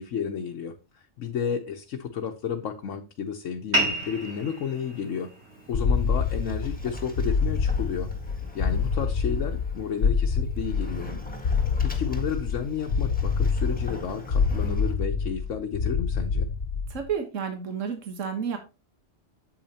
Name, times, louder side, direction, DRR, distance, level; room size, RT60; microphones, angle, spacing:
voice 1, 0.0-5.3 5.7-8.1 8.5-11.2 11.8-16.5, left 7 dB, 85° left, 1.2 m, -32 dB
sound 1, 3.7-8.8, equal, 55° right, 2.6 m, -33 dB
Sliding door, 5.5-14.9, equal, 5° left, 1.5 m, -44 dB
sound 2, 5.7-17.1, left 5 dB, 55° left, 1.0 m, -26 dB
voice 2, 16.9-18.6, right 7 dB, 80° right, 1.6 m, -31 dB
8.7 x 7.8 x 2.8 m
omnidirectional pair, 1.3 m